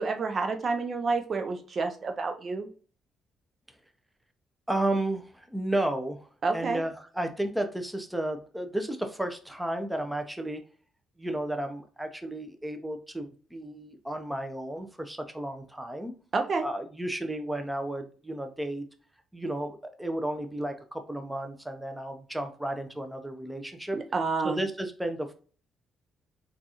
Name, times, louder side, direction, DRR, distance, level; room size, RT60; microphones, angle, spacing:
voice 1, 0.0-2.7 6.4-6.8 16.3-16.7 23.9-24.6, right 4 dB, 50° right, 6 dB, 0.5 m, -29 dB
voice 2, 4.7-6.3 6.5-10.6 11.2-16.1 16.6-18.9 19.3-24.0 24.4-25.3, right 1 dB, 10° right, 6 dB, 0.6 m, -33 dB
3.7 x 2.4 x 2.9 m, 0.40 s
supercardioid pair, 65°, 0 cm